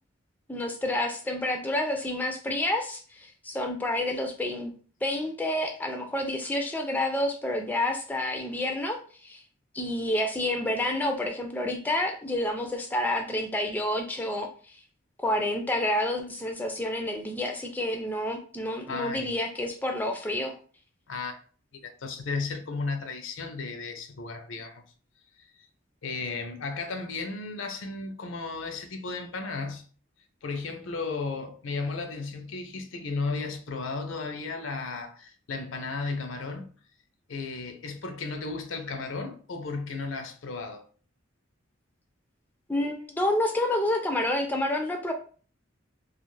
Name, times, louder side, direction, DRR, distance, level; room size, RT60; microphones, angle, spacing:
voice 1, 0.5-4.7 5.0-9.4 9.7-14.5 15.2-20.5 42.7-45.1, left 1 dB, 10° left, 0.3 m, -29 dB
voice 2, 18.9-19.3 21.1-21.4 21.8-24.8 26.0-29.8 30.4-36.7 37.3-40.9, left 4 dB, 80° left, 0.5 m, -34 dB
2.4 x 2.4 x 3.1 m
head